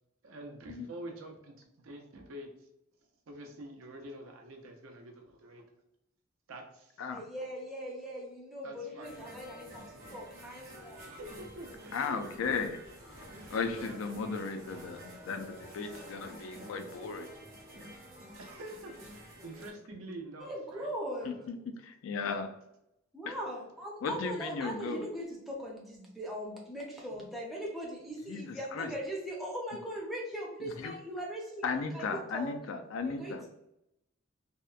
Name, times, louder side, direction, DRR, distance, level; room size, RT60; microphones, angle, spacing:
voice 1, 0.2-2.5 3.3-5.6 6.5-7.0 8.6-9.1 11.0-12.6 13.3-14.0 18.4-20.9 21.2-21.5 24.0-24.4, right 1 dB, 80° right, 3 dB, 0.5 m, -47 dB
voice 2, 7.1-9.8 10.1-11.0 20.4-21.3 23.1-32.6 33.1-33.4, equal, ahead, -4 dB, 0.5 m, -40 dB
sound 1, 9.0-19.7, equal, 45° right, 0.8 m, -49 dB
voice 3, 11.9-12.8 13.5-17.3 21.2-22.5 23.3-23.4 24.0-25.1 28.3-28.9 30.6-30.9 31.6-33.5, left 5 dB, 70° left, 7 dB, 0.3 m, -36 dB
2.8 x 2.1 x 2.3 m, 0.84 s
head